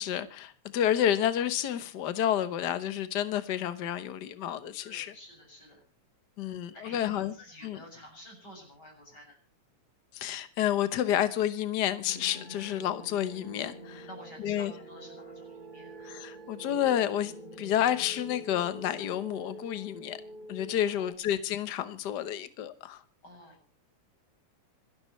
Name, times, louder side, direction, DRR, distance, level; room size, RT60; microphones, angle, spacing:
voice 1, 0.0-5.1 6.4-7.3 7.6-7.8 10.1-14.1 14.4-14.7 16.0-20.2 20.5-23.0, left 10 dB, 80° left, 0.9 m, -30 dB
voice 2, 4.8-5.8 6.4-9.4 14.1-16.0 20.8-21.1 23.2-23.6, equal, 30° left, 7.7 m, -50 dB
sound 1, 12.1-21.1, right 1 dB, 15° right, 3.0 m, -46 dB
26.0 x 13.0 x 3.2 m
omnidirectional pair, 3.4 m